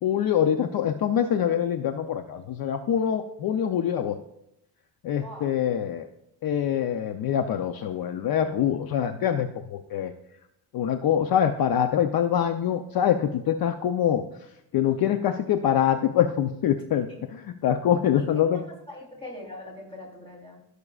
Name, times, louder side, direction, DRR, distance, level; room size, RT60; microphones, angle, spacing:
voice 1, 0.0-4.2 5.0-6.1 6.4-10.1 10.7-14.2 14.7-18.6, left 9 dB, 55° left, 7 dB, 0.7 m, -24 dB
voice 2, 5.2-5.6 17.1-17.2 18.2-18.3 18.5-20.6, left 1 dB, 15° left, 0 dB, 3.4 m, -42 dB
15.5 x 6.6 x 2.4 m, 0.82 s
cardioid pair, 135°, 42 cm